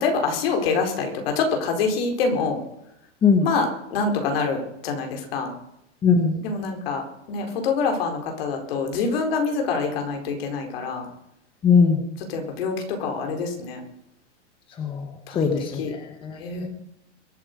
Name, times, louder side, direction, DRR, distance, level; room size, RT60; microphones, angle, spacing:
voice 1, 0.0-2.6 3.4-5.5 6.4-7.0 7.3-11.1 12.3-13.8 15.3-15.5 15.8-15.9 16.3-16.7, left 4 dB, 55° left, 3 dB, 4.3 m, -25 dB
voice 2, 6.0-6.4 11.6-12.0 14.8-16.7, left 5 dB, 15° left, 5 dB, 1.2 m, -21 dB
23.0 x 8.6 x 5.2 m, 0.78 s
supercardioid pair, 160°, 36 cm